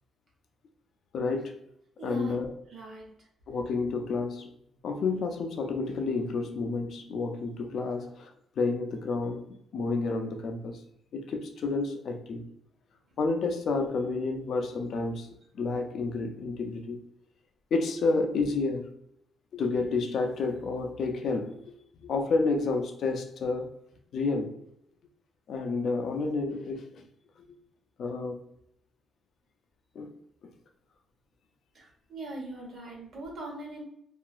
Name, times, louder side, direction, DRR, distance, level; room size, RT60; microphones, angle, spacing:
voice 1, 1.1-1.6 2.0-2.5 3.5-4.5 4.8-10.8 11.1-12.4 13.2-17.0 17.7-18.9 19.5-21.6 22.0-23.7 24.1-24.6 25.5-27.1 28.0-28.4 30.0-30.1, left 3 dB, 60° left, 0.4 m, -30 dB
voice 2, 2.0-2.3 2.7-3.1 31.7-33.8, right 2 dB, 50° right, 1.0 m, -41 dB
2.8 x 2.4 x 2.3 m
cardioid pair, 130°, 0 cm